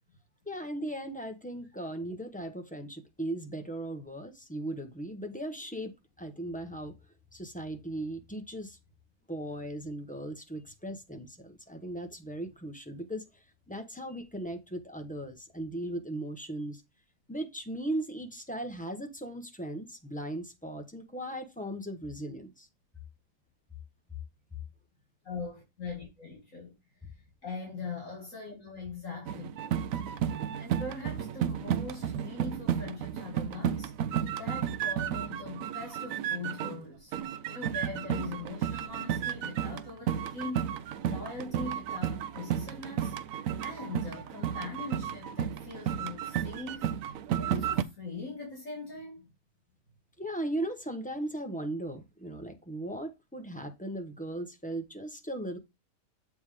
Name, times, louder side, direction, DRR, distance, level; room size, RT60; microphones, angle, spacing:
voice 1, 0.5-7.0 7.3-8.8 9.3-16.8 17.3-22.7 50.2-55.6, right 1 dB, 5° left, 0.8 m, -38 dB
voice 2, 25.2-26.7 27.4-29.6 30.6-33.9 34.4-37.1 37.5-43.1 43.6-46.9 47.4-49.3, left 4 dB, 65° left, 2.5 m, -41 dB
sound 1, 29.3-36.9 37.1-47.8, right 9 dB, 75° right, 1.0 m, -33 dB
7.5 x 3.5 x 4.9 m
omnidirectional pair, 1.5 m